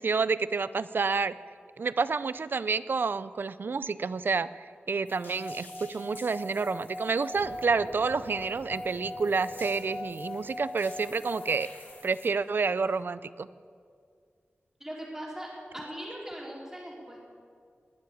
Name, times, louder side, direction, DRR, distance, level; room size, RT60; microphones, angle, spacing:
voice 1, 0.0-1.3 1.8-13.5, right 4 dB, 65° right, 16 dB, 0.5 m, -29 dB
sound 1, 5.1-12.3, left 3 dB, 55° left, 2.1 m, -52 dB
Singing / Glass, 5.3-11.9, left 1 dB, 5° left, 0.6 m, -41 dB
sound 2, 7.3-13.0, left 2 dB, 80° left, 2.3 m, -50 dB
voice 2, 14.8-15.5 15.7-17.2, equal, 15° right, -4 dB, 4.3 m, -40 dB
20.5 x 7.7 x 8.6 m, 2.2 s
wide cardioid pair, 85°, 4 cm